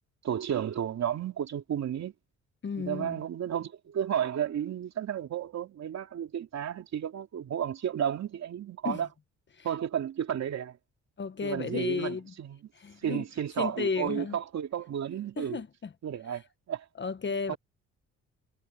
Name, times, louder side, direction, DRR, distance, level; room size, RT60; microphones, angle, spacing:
voice 1, 0.2-2.1 2.8-9.1 9.6-10.8 11.4-12.7 13.0-15.6 16.0-16.8 17.5-17.6, right 9 dB, 60° right, 2.9 m, -32 dB
voice 2, 2.6-3.2 8.8-9.0 9.5-9.7 11.2-12.3 12.7-13.2 13.6-14.4 15.4-15.9 17.0-17.6, left 5 dB, 40° left, 1.3 m, -33 dB
cardioid pair, 90°, 30 cm